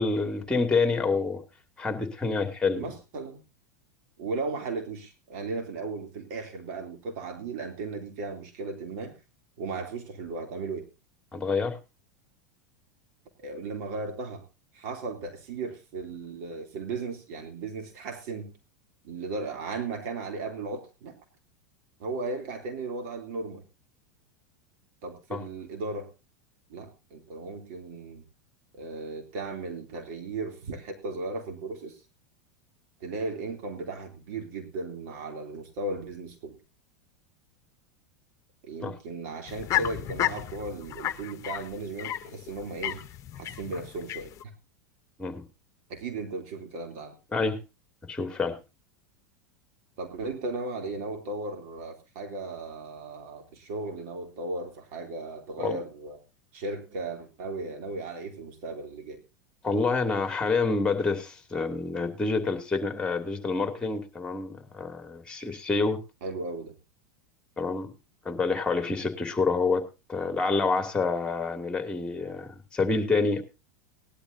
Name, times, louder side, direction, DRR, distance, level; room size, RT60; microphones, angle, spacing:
voice 1, 0.0-1.4 1.8-2.8 11.3-11.8 25.3-25.4 38.8-38.9 45.2-45.4 47.3-47.6 48.1-48.6 55.6-55.8 59.6-66.0 67.6-67.9 68.2-73.4, left 4 dB, 10° left, 7 dB, 2.8 m, -27 dB
voice 2, 2.7-3.4 4.2-9.2 9.6-10.9 13.4-14.4 14.7-18.5 19.0-21.2 22.0-23.6 25.0-26.1 26.7-28.2 28.7-32.0 33.0-36.6 38.6-43.1 43.4-44.5 45.9-47.1 50.0-56.2 56.5-59.2 66.2-66.7, right 3 dB, 60° right, 4 dB, 3.2 m, -36 dB
sound 1, 39.5-44.4, left 13 dB, 40° left, 1.0 m, -33 dB
19.0 x 12.0 x 2.8 m, 0.27 s
hypercardioid pair, 100°, 9 cm